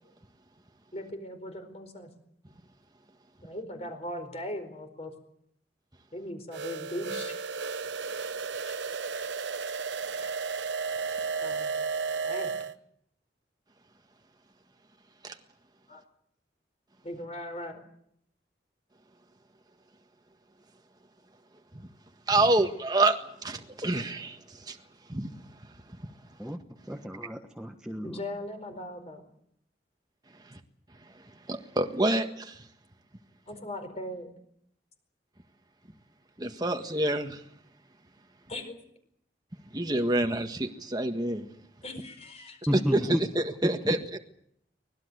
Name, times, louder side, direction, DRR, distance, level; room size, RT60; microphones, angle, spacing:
voice 1, 0.9-2.1 3.4-5.1 6.1-7.3 8.3-8.9 9.5-9.6 10.1-10.3 11.4-11.7 12.2-12.5 15.9-16.0 17.0-17.8 28.0-29.2 33.5-34.3 38.5-38.8 41.8-42.7, left 1 dB, 35° left, 4.6 m, -39 dB
sound 1, 6.5-12.7, right 5 dB, 90° right, 1.0 m, -33 dB
voice 2, 22.3-24.8 25.1-26.1 30.4-30.6 31.0-32.7 36.4-37.5 39.7-41.5 42.7-44.2, right 2 dB, 25° right, 1.7 m, -28 dB
voice 3, 26.9-28.2 42.7-43.0 43.8-43.9, equal, 5° right, 1.4 m, -32 dB
24.5 x 19.0 x 8.1 m
head